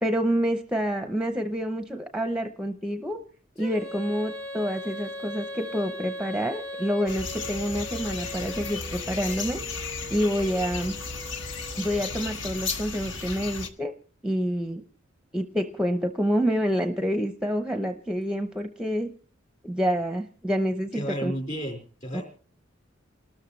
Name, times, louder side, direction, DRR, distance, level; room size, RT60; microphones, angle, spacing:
voice 1, 0.0-3.2 3.6-9.6 10.1-10.9 11.8-13.9 14.2-14.8 15.3-19.1 19.6-21.3 22.1-22.2, equal, 5° right, 7 dB, 0.7 m, -27 dB
Female singing, 3.6-12.4, left 1 dB, 80° left, 2.7 m, -39 dB
sound 1, 7.1-13.7, left 4 dB, 65° left, 1.4 m, -34 dB
voice 2, 20.9-22.2, equal, 35° left, 2 dB, 4.7 m, -32 dB
28.5 x 13.0 x 3.1 m, 0.43 s
head